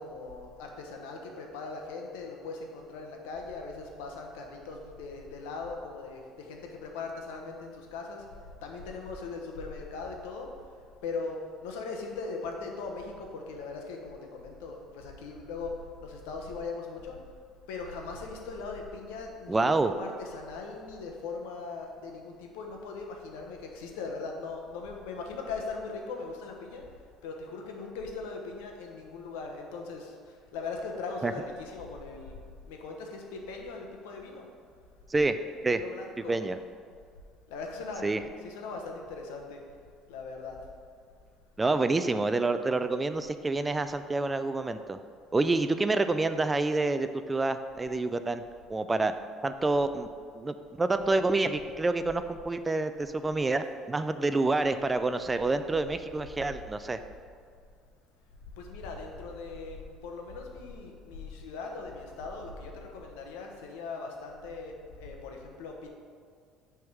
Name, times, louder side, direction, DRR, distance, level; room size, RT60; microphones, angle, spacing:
voice 1, 0.0-8.2 8.6-10.5 11.0-17.2 17.7-26.8 27.2-30.1 30.5-32.4 32.6-34.5 35.7-36.4 37.5-38.1 38.4-39.6 40.1-40.6 58.6-65.9, left 4 dB, 90° left, 2 dB, 0.9 m, -39 dB
voice 2, 19.5-19.9 31.2-31.3 35.1-35.4 35.6-35.8 36.3-36.6 38.0-38.2 41.6-45.0 45.3-48.4 48.7-49.1 49.4-50.1 50.4-57.0, right 3 dB, 20° right, 10 dB, 0.3 m, -27 dB
6.2 x 3.6 x 6.0 m, 2.1 s
supercardioid pair, 95°, 0 cm